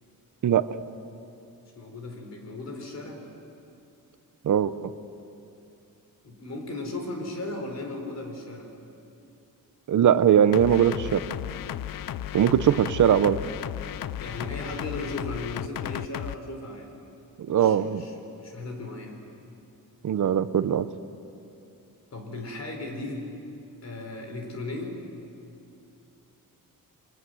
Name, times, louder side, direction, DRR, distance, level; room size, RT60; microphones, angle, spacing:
voice 1, 1.8-3.2 6.2-8.7 12.6-13.2 14.2-17.0 17.5-18.1 18.4-19.2 22.1-23.3 23.8-25.0, left 2 dB, 45° left, 4 dB, 4.1 m, -36 dB
voice 2, 9.9-11.2 12.3-13.4 17.4-18.0 20.0-20.9, right 9 dB, 55° right, 13 dB, 0.8 m, -20 dB
sound 1, 10.5-16.4, left 11 dB, 70° left, 0.6 m, -34 dB
29.0 x 23.5 x 7.8 m, 2.7 s
wide cardioid pair, 170°, 36 cm